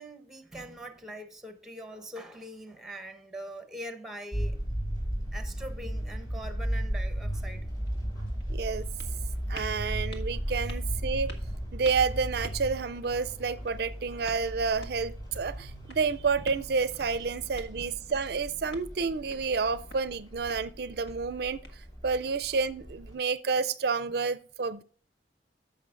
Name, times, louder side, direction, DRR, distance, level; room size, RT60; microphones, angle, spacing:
voice 1, 0.0-4.6 5.3-7.7, right 1 dB, 5° right, 0.9 m, -42 dB
sound 1, 4.3-23.1, equal, 25° left, 3.4 m, -36 dB
sound 2, 7.8-22.2, left 1 dB, 70° left, 1.7 m, -53 dB
voice 2, 8.5-8.9 9.5-11.3 11.7-21.6 22.0-24.8, right 5 dB, 60° right, 0.4 m, -29 dB
14.5 x 5.8 x 2.5 m
head